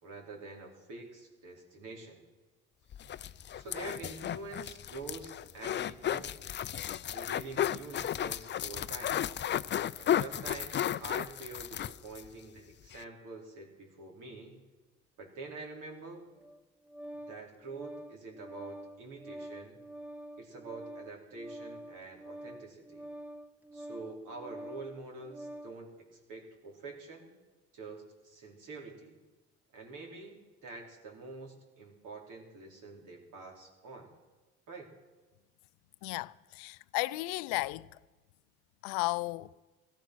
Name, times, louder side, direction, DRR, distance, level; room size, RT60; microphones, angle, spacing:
voice 1, 0.0-2.2 3.5-6.3 7.1-9.2 10.0-14.6 15.2-16.2 17.3-19.8 20.4-23.0 23.7-27.3 27.7-29.2 29.7-34.1 34.7-34.9, right 3 dB, 65° right, 4.0 m, -46 dB
sound 1, 2.9-12.3 12.6-12.7 12.9-13.0, left 10 dB, 35° left, 0.4 m, -34 dB
Organ, 16.4-25.8, right 1 dB, 5° right, 0.8 m, -47 dB
voice 2, 36.0-37.9 38.8-39.5, left 21 dB, 80° left, 0.5 m, -34 dB
17.5 x 13.5 x 6.2 m
supercardioid pair, 85°, 33 cm